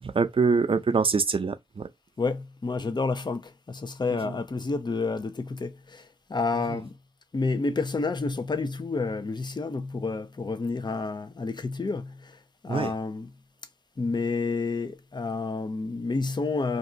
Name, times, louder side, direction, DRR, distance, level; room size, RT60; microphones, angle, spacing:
voice 1, 0.0-1.9 4.1-4.3 6.7-6.8 12.7-12.9, right 4 dB, 60° right, 0.6 m, -25 dB
voice 2, 2.2-7.0 7.3-12.4 12.6-13.3 14.0-16.8, left 3 dB, 45° left, 0.6 m, -29 dB
2.6 x 2.4 x 3.8 m
wide cardioid pair, 60°, 11 cm